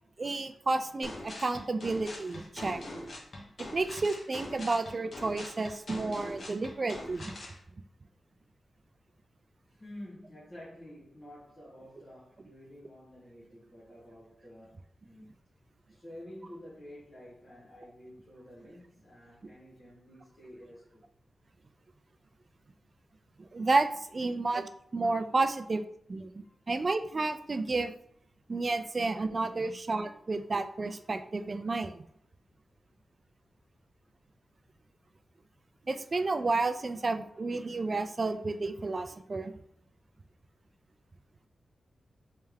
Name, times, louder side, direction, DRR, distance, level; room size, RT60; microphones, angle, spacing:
voice 1, 0.2-2.8 3.6-7.3 19.4-19.5 23.4-27.9 28.5-32.0 35.9-39.5, right 3 dB, 35° right, 0.3 m, -31 dB
sound 1, 1.0-7.6, left 1 dB, 50° left, 1.0 m, -43 dB
voice 2, 9.7-15.3 15.9-21.1 26.4-26.6, left 1 dB, 30° left, 1.4 m, -50 dB
3.3 x 3.3 x 3.4 m
wide cardioid pair, 125°, 0 cm